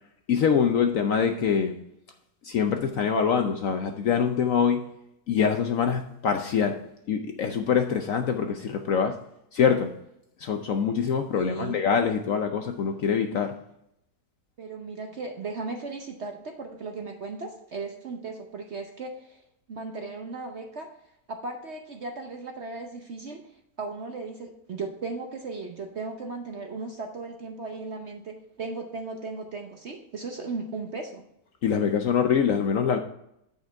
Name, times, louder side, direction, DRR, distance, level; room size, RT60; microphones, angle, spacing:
voice 1, 0.3-1.8 2.4-4.8 5.3-6.8 7.1-9.2 9.5-9.9 10.4-13.6 31.6-33.0, left 7 dB, 65° left, 6 dB, 0.9 m, -24 dB
voice 2, 11.3-11.8 14.6-19.4 19.7-20.9 21.3-23.5 23.8-31.2, right 3 dB, 50° right, 4 dB, 0.9 m, -36 dB
8.8 x 5.2 x 4.6 m, 0.77 s
omnidirectional pair, 1.9 m